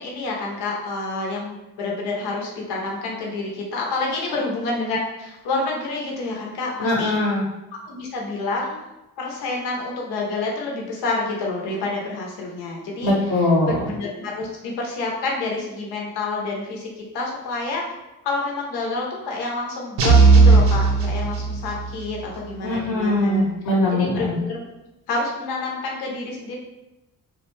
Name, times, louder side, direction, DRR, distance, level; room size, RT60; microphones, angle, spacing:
voice 1, 0.0-7.1 7.9-8.8 9.2-13.1 13.7-17.9 18.2-23.4 23.9-24.6 25.1-26.6, left 3 dB, 90° left, -1 dB, 0.7 m, -28 dB
voice 2, 6.8-7.4 13.0-13.8 22.6-24.4, left 1 dB, 45° left, -3 dB, 0.8 m, -21 dB
sound 1, 20.0-21.9, right 4 dB, 80° right, 0.6 m, -15 dB
2.3 x 2.1 x 3.1 m, 0.97 s
supercardioid pair, 65°, 38 cm